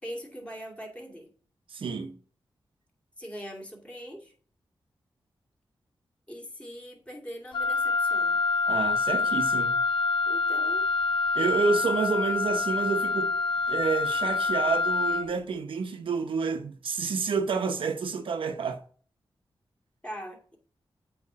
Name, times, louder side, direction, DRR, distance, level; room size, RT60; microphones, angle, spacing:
voice 1, 0.0-1.3 3.2-4.3 6.3-8.4 10.2-10.9 20.0-20.6, equal, 15° left, 2.4 m, -41 dB
voice 2, 1.7-2.2 8.7-9.7 11.3-13.3 13.7-18.8, right 5 dB, 85° right, 0.9 m, -29 dB
Wind instrument woodwind instrument, 7.5-15.3, left 4 dB, 70° left, 0.4 m, -26 dB
8.1 x 3.2 x 6.2 m
wide cardioid pair, 80°, 9 cm